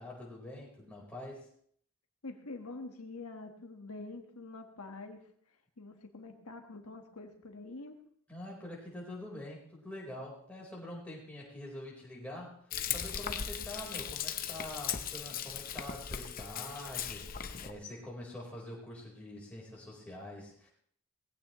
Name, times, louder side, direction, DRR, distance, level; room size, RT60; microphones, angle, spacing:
voice 1, 0.0-1.5 8.3-20.7, left 1 dB, 5° left, -3 dB, 4.0 m, -45 dB
voice 2, 2.2-5.2 5.5-8.0, left 3 dB, 85° left, 4 dB, 1.4 m, -46 dB
Frying (food), 12.7-17.7, left 8 dB, 40° left, 0.7 m, -38 dB
19.0 x 15.5 x 3.1 m, 0.62 s
head